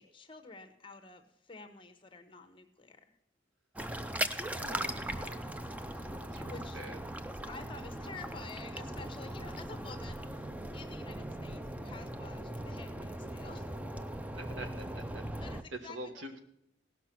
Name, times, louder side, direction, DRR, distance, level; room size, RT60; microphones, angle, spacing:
voice 1, 0.0-3.1 5.9-6.1 6.5-6.8 7.5-13.7 15.4-16.4, left 4 dB, 25° left, 7 dB, 0.9 m, -50 dB
sound 1, 3.8-15.6, right 1 dB, 10° right, 0.4 m, -39 dB
voice 2, 4.5-5.5 6.2-7.0 14.4-15.2 15.7-16.4, right 1 dB, 85° right, 6 dB, 1.4 m, -45 dB
17.5 x 5.9 x 5.9 m, 0.80 s
head